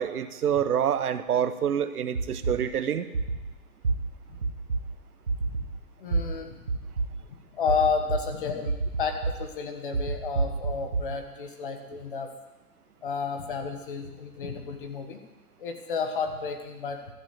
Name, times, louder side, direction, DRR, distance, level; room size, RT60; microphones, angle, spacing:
voice 1, 0.0-3.1, right 9 dB, 85° right, 11 dB, 1.0 m, -27 dB
sound 1, 2.1-2.5 3.1-3.4 3.8-3.9 4.4-4.8 5.3-5.6 6.1-6.2 6.7-7.1 7.7-8.2 8.7-9.3 9.9-11.0, right 4 dB, 25° right, 0.6 m, -26 dB
voice 2, 6.0-6.5 7.5-12.3 13.0-15.2 15.6-17.1, left 5 dB, 35° left, 6 dB, 1.3 m, -31 dB
13.0 x 6.0 x 8.2 m, 1.1 s
hypercardioid pair, 175°, 44 cm